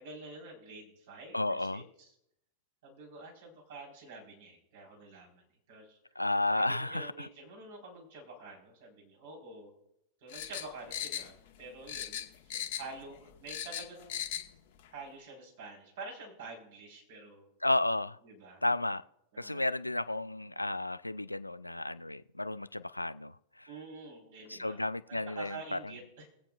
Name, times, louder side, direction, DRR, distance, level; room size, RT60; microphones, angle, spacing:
voice 1, 0.0-1.8 2.8-6.0 6.5-9.7 10.2-14.4 14.9-17.5 18.2-18.6 19.3-19.7 23.7-24.8 25.1-26.3, right 3 dB, 55° right, 4.1 m, -48 dB
voice 2, 1.3-1.8 6.2-7.3 17.6-18.2 18.6-19.0 19.4-23.7 24.5-25.9, left 2 dB, 90° left, 0.3 m, -32 dB
sound 1, 10.3-11.6 11.9-13.0 13.3-14.5 14.8-14.9, left 10 dB, 50° left, 1.1 m, -38 dB
22.5 x 8.6 x 2.4 m
figure-of-eight pair, 95°, 0 cm